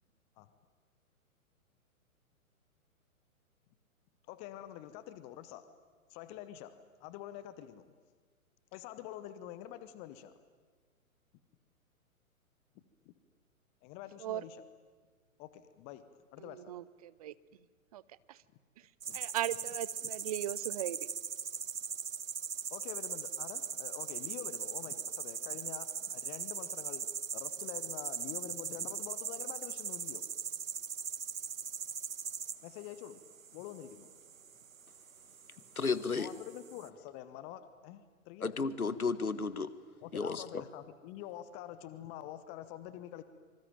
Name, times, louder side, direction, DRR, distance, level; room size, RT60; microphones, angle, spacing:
voice 1, 4.3-5.6 6.1-6.7 7.0-7.8 8.7-10.3 13.0-13.1 13.8-14.6 15.4-16.0 16.3-16.6 19.1-19.2 22.7-27.1 27.3-30.3 32.6-33.2 33.5-34.1 35.6-35.7 36.1-38.5 40.0-43.2, left 12 dB, 15° left, 0.8 m, -46 dB
voice 2, 16.4-17.3 17.9-18.0 18.3-18.4 18.8-21.1, right 12 dB, 25° right, 0.7 m, -38 dB
sound 1, 19.0-36.9, right 7 dB, 65° right, 1.6 m, -40 dB
voice 3, 35.7-36.3 38.4-39.7 40.1-40.4, left 4 dB, 75° left, 1.6 m, -33 dB
26.0 x 25.0 x 9.1 m
figure-of-eight pair, 120°, 43 cm